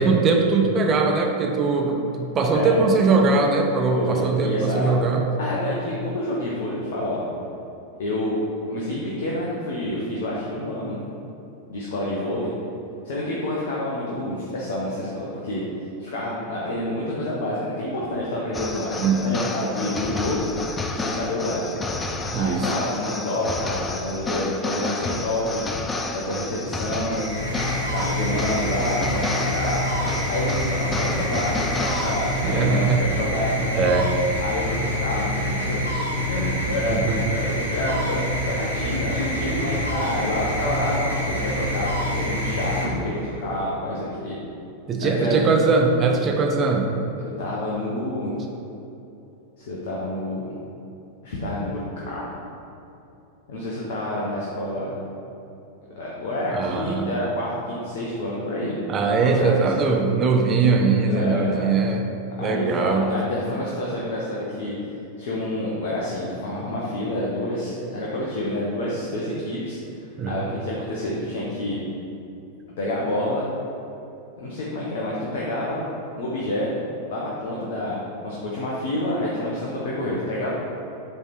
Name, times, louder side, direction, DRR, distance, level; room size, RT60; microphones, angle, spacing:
voice 1, 0.0-5.2 19.0-19.4 22.3-22.7 32.4-33.0 33.6-34.1 36.9-37.2 44.9-46.9 56.5-57.1 58.9-62.1 62.4-63.1 70.2-70.4, right 4 dB, 25° right, 2 dB, 0.7 m, -21 dB
voice 2, 3.9-5.0 5.4-7.2 8.0-8.4 8.7-11.0 11.7-12.5 13.0-15.6 16.0-20.5 20.9-21.7 22.3-25.6 26.1-27.2 27.7-29.9 30.3-33.6 34.4-35.8 36.2-44.4 45.0-45.4 47.2-48.3 49.6-50.5 51.2-51.8 52.1-52.3 53.5-55.0 56.0-58.8 59.2-59.7 61.1-61.7 62.4-64.8 65.2-69.8 70.3-71.8 72.8-73.5 74.4-75.9 76.1-78.0 78.2-80.5, left 1 dB, 55° left, -5 dB, 1.0 m, -28 dB
sound 1, 18.5-32.6, left 3 dB, 15° left, 0.5 m, -31 dB
sound 2, 27.0-43.5, equal, 80° right, 1.5 m, -27 dB
7.8 x 3.4 x 4.5 m, 2.9 s
figure-of-eight pair, 90°, 0 cm